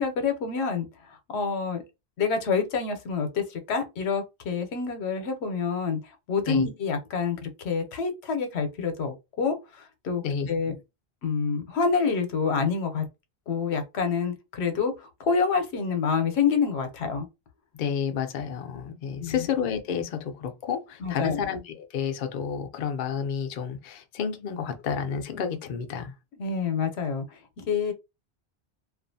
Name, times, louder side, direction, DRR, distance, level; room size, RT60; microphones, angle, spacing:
voice 1, 0.0-1.8 2.2-6.0 6.3-10.2 10.5-10.7 11.2-13.0 13.5-17.3 19.2-19.5 21.0-21.4 26.4-27.9, left 5 dB, 80° left, 0.9 m, -27 dB
voice 2, 10.2-10.8 17.7-26.2, left 7 dB, 60° left, 0.6 m, -30 dB
2.4 x 2.3 x 2.6 m
omnidirectional pair, 1.1 m